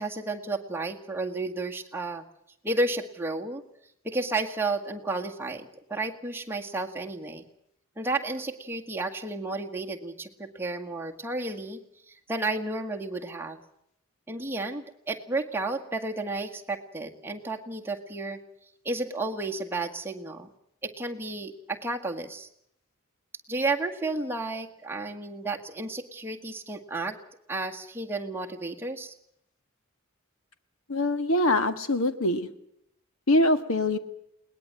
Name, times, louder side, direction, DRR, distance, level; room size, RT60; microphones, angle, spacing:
voice 1, 0.0-2.2 2.6-3.6 4.0-7.4 8.0-13.6 14.3-18.4 18.9-20.5 20.8-22.5 23.5-27.2 27.5-29.1, right 2 dB, 10° right, 1 dB, 1.8 m, -32 dB
voice 2, 30.9-32.5 33.3-34.0, left 1 dB, 80° left, 11 dB, 1.7 m, -23 dB
21.5 x 19.5 x 7.7 m, 0.75 s
head